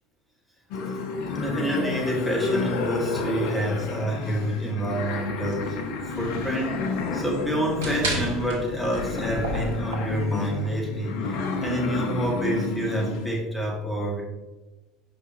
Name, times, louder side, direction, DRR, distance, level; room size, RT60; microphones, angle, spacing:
sound 1, 0.7-13.3, left 4 dB, 60° left, 0.6 m, -31 dB
voice 1, 1.4-6.9 7.1-14.2, right 1 dB, ahead, -3 dB, 1.9 m, -28 dB
sound 2, 5.4-10.7, right 1 dB, 70° right, 1.3 m, -33 dB
5.0 x 5.0 x 4.1 m, 1.1 s
figure-of-eight pair, 70°, 0 cm